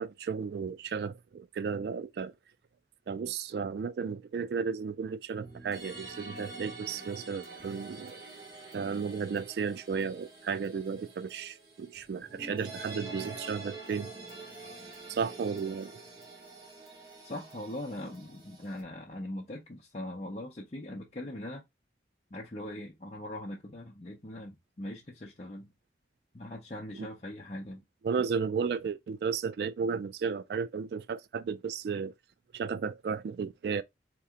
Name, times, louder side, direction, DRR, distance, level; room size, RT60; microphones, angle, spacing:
voice 1, 0.0-2.3 3.1-8.2 8.7-14.1 15.1-16.0 26.9-27.1 28.0-32.1 32.5-33.8, right 6 dB, 65° right, 0.3 m, -34 dB
sound 1, 5.4-18.8, right 3 dB, 25° right, 1.7 m, -47 dB
voice 2, 17.2-21.6 22.3-25.7 26.3-27.8, left 1 dB, 35° left, 0.7 m, -41 dB
4.1 x 3.0 x 3.6 m
head